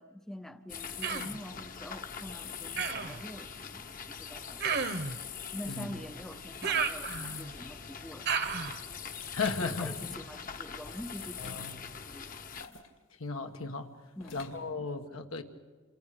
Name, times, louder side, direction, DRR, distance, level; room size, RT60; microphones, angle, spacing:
voice 1, 0.0-5.0 5.5-8.3 9.6-12.3 12.6-12.8 14.2-14.9, equal, ahead, 0.7 m, -46 dB
sound 1, 0.7-12.7, left 7 dB, 40° left, 1.1 m, -43 dB
Human voice, 1.0-1.4 2.8-3.2 4.6-5.2 6.6-7.5 8.3-8.8, right 5 dB, 50° right, 1.2 m, -32 dB
sound 2, 9.2-9.7 11.2-11.7 12.4-13.0 14.2-14.7, left 5 dB, 65° left, 2.7 m, -49 dB
voice 2, 9.3-9.9 11.4-11.7 13.2-13.9 14.3-15.4, left 4 dB, 85° left, 1.8 m, -35 dB
28.5 x 28.0 x 5.3 m
head